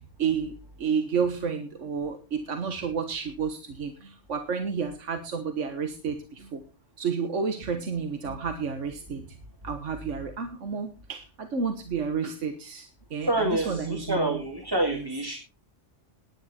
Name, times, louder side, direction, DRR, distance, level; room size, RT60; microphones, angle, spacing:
voice 1, 0.2-0.5 0.8-6.6 7.0-9.2 9.6-14.4 14.9-15.0, right 6 dB, 80° right, 7 dB, 1.7 m, -31 dB
voice 2, 13.2-15.4, right 1 dB, 20° right, 2 dB, 2.4 m, -27 dB
18.0 x 10.0 x 4.4 m, 0.34 s
omnidirectional pair, 1.2 m